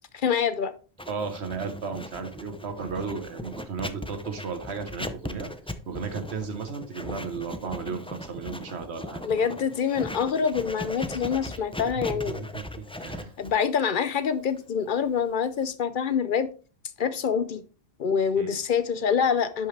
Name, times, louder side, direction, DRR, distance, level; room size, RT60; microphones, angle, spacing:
voice 1, 0.2-0.7 9.2-12.4 13.4-16.5 17.0-17.6 18.0-19.7, left 7 dB, 55° left, 0.7 m, -26 dB
Writing, 1.0-15.7, left 1 dB, 10° left, 0.4 m, -39 dB
voice 2, 1.1-5.5 5.9-9.2 11.5-11.6 12.1-13.3 18.3-18.6, right 5 dB, 85° right, 1.5 m, -34 dB
10.5 x 5.5 x 3.3 m
omnidirectional pair, 1.1 m